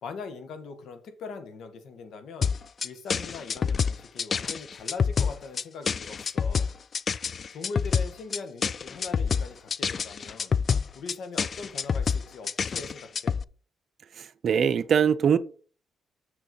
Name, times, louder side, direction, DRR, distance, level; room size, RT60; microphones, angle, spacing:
voice 1, 0.0-2.6 2.8-6.7 7.5-10.5 10.9-13.3, left 4 dB, 70° left, 1.6 m, -41 dB
sound 1, 2.4-13.4, left 6 dB, 45° left, 0.3 m, -27 dB
voice 2, 14.1-15.4, right 7 dB, 55° right, 0.7 m, -22 dB
7.1 x 6.7 x 5.4 m
cardioid pair, 90°, 0 cm